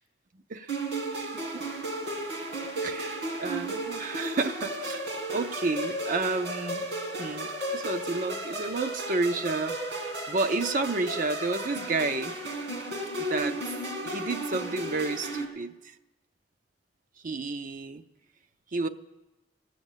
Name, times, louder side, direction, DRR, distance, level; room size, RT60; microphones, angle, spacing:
sound 1, 0.7-15.4, right 1 dB, 75° right, 2.2 m, -34 dB
voice 1, 1.1-1.7 2.8-5.1 5.3-6.9 7.2-9.9 10.3-12.4 13.2-13.7 14.0-15.9 17.2-18.0 18.7-18.9, right 3 dB, 50° right, 9 dB, 0.6 m, -31 dB
18.5 x 7.8 x 7.3 m, 1.0 s
head